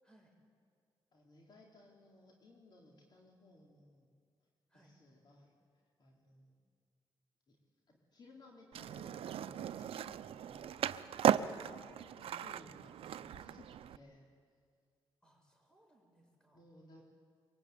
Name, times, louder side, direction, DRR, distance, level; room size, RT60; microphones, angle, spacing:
voice 1, 0.0-0.3 4.7-4.9 11.3-12.2 15.2-16.6, right 1 dB, 10° left, 1 dB, 6.9 m, -62 dB
voice 2, 1.1-4.2 4.7-6.6 7.5-7.6 7.9-11.2 12.2-14.3 16.5-17.0, left 2 dB, 50° left, -2 dB, 3.6 m, -60 dB
Skateboard, 8.7-14.0, right 10 dB, 80° right, 0.6 m, -36 dB
23.5 x 23.0 x 9.4 m, 2.1 s
wide cardioid pair, 130°, 10 cm